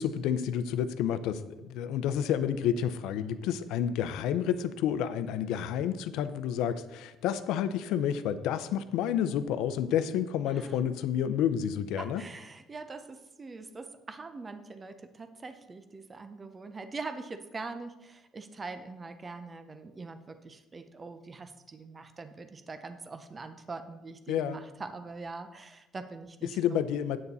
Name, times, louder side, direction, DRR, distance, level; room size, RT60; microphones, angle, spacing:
voice 1, 0.0-12.2 24.3-24.6 26.4-27.2, left 9 dB, 75° left, 12 dB, 0.6 m, -30 dB
voice 2, 12.0-26.8, right 3 dB, 15° right, 8 dB, 0.5 m, -43 dB
9.3 x 8.5 x 4.1 m, 1.0 s
cardioid pair, 180°, 0 cm